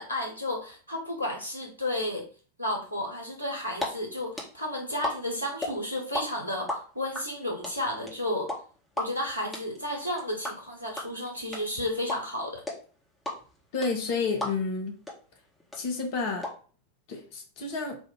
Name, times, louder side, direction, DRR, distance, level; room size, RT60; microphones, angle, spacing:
voice 1, 0.0-2.2 2.6-8.5 9.0-12.6, left 1 dB, 85° right, 0 dB, 1.3 m, -32 dB
sound 1, 3.8-6.2 6.5-14.8 15.1-15.2 15.4-16.5, left 1 dB, 5° left, 1.2 m, -33 dB
voice 2, 13.7-14.9 15.7-16.4 17.1-18.0, left 4 dB, 45° left, 3 dB, 1.1 m, -30 dB
3.4 x 2.5 x 4.5 m, 0.40 s
figure-of-eight pair, 90°, 0 cm